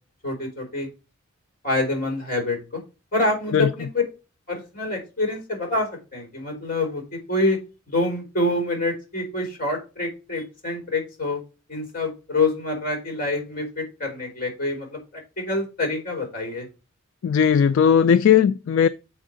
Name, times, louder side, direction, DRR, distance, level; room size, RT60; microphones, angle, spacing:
voice 1, 0.2-0.9 1.6-2.8 3.1-4.0 4.5-7.6 7.9-11.4 11.7-16.7, left 2 dB, 40° left, 3.5 m, -26 dB
voice 2, 17.2-18.9, left 7 dB, 60° left, 0.3 m, -17 dB
7.5 x 4.5 x 5.0 m
head